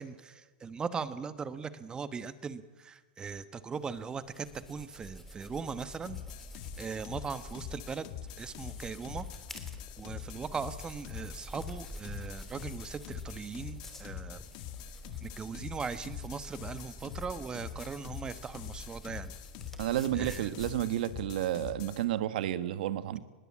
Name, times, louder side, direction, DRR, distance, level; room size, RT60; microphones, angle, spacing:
voice 1, 0.0-6.2 6.8-8.1 8.4-9.3 10.0-14.4 15.2-19.3 20.1-20.5, right 5 dB, 15° right, 13 dB, 1.2 m, -39 dB
sound 1, 3.7-21.2, left 1 dB, 5° left, 3.2 m, -49 dB
sound 2, 6.0-22.0, left 10 dB, 50° left, 2.1 m, -44 dB
voice 2, 19.8-23.2, right 12 dB, 70° right, 13 dB, 1.5 m, -31 dB
23.5 x 20.5 x 8.7 m, 1.3 s
supercardioid pair, 145°, 5 cm